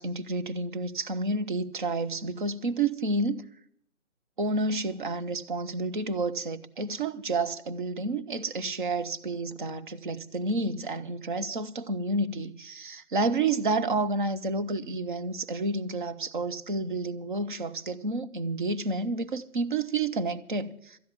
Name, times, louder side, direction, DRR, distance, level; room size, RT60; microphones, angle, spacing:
voice 1, 0.0-3.4 4.4-21.0, right 3 dB, 35° right, 0.7 m, -30 dB
13.0 x 10.5 x 8.3 m
figure-of-eight pair, 145°, 42 cm